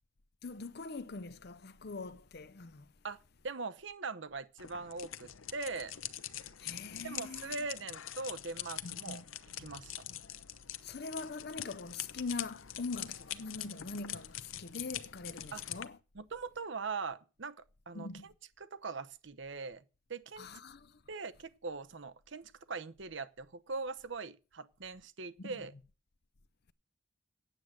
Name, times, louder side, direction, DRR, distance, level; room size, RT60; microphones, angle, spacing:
voice 1, 0.4-2.9 6.6-7.6 9.1-9.2 10.8-16.0 17.9-18.3 20.4-21.0 25.4-25.6, left 4 dB, 55° left, 0.7 m, -43 dB
voice 2, 3.0-5.9 7.0-9.2 9.6-9.9 15.5-15.6 16.1-18.3 18.6-19.8 20.1-20.5 21.1-25.7, right 4 dB, 65° right, 0.9 m, -41 dB
sound 1, 4.6-15.9, left 11 dB, 90° left, 0.8 m, -44 dB
9.2 x 7.8 x 7.5 m
head